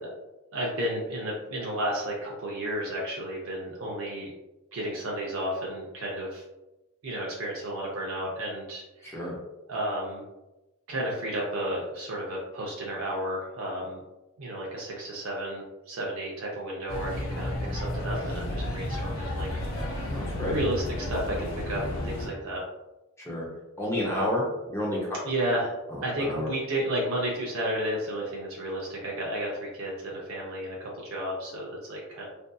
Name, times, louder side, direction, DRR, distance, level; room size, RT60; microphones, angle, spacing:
voice 1, 0.5-4.3 4.7-6.4 7.0-9.3 9.7-10.2 10.9-14.0 14.4-22.6 25.2-32.3, right 1 dB, 80° right, -3 dB, 0.5 m, -32 dB
voice 2, 9.0-9.3 20.0-20.5 23.2-23.5 23.8-24.4 24.7-25.2 25.9-26.5, left 1 dB, 15° left, -4 dB, 0.6 m, -30 dB
sound 1, 16.9-22.3, left 1 dB, 75° left, 0.6 m, -32 dB
2.5 x 2.5 x 2.2 m, 1.0 s
head